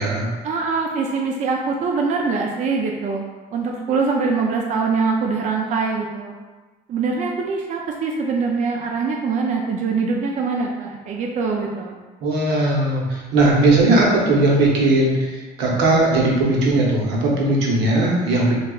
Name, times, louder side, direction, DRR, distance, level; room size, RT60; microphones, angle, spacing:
voice 1, 0.4-3.2 3.5-6.4 6.9-12.0, right 4 dB, 45° right, 0 dB, 0.4 m, -23 dB
voice 2, 12.2-18.6, right 2 dB, 85° right, -3 dB, 0.8 m, -18 dB
4.7 x 2.3 x 2.3 m, 1.3 s
cardioid pair, 110°, 17 cm